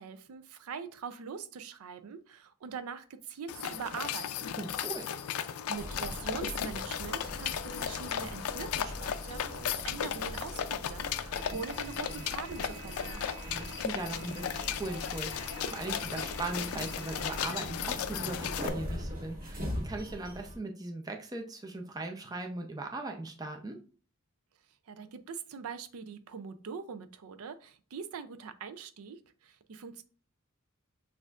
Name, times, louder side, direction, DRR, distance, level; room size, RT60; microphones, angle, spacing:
voice 1, 0.0-4.5 5.7-13.3 24.9-30.0, right 6 dB, 85° right, 11 dB, 0.4 m, -42 dB
sound 1, 3.5-18.7, left 9 dB, 90° left, 0.4 m, -36 dB
voice 2, 4.6-5.1 13.4-23.8, right 2 dB, 15° right, 3 dB, 0.5 m, -39 dB
sound 2, 5.7-20.6, equal, 40° right, 1.3 m, -42 dB
6.3 x 2.5 x 2.4 m, 0.39 s
head